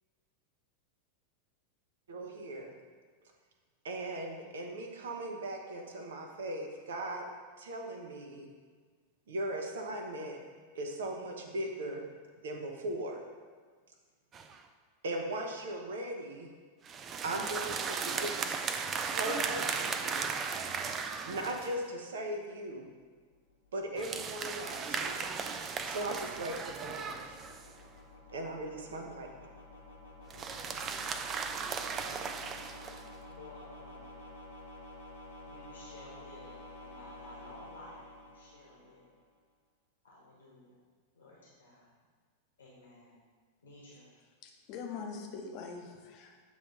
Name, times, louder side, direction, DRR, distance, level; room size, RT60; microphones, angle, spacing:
voice 1, 2.1-2.7 3.8-7.2 7.6-8.5 9.3-10.4 10.7-12.1 12.4-13.2 15.0-16.5 17.2-18.6 19.0-20.3 20.9-22.9 23.7-25.2 25.9-26.6 26.8-27.4 28.3-29.3, right 1 dB, 60° right, 3 dB, 0.9 m, -38 dB
sound 1, 14.3-14.6 16.8-21.8 24.0-27.8 30.3-33.1, right 5 dB, 25° right, 0.4 m, -36 dB
sound 2, 23.0-39.2, left 2 dB, 90° left, 1.5 m, -51 dB
voice 2, 33.3-34.3 35.4-39.1 40.0-40.8 41.1-41.9 42.6-43.1 43.6-44.1, left 2 dB, 70° left, -5 dB, 1.4 m, -54 dB
voice 3, 44.4-46.4, left 5 dB, 40° left, 3 dB, 0.9 m, -43 dB
8.3 x 3.3 x 5.6 m, 1.5 s
figure-of-eight pair, 90°, 0 cm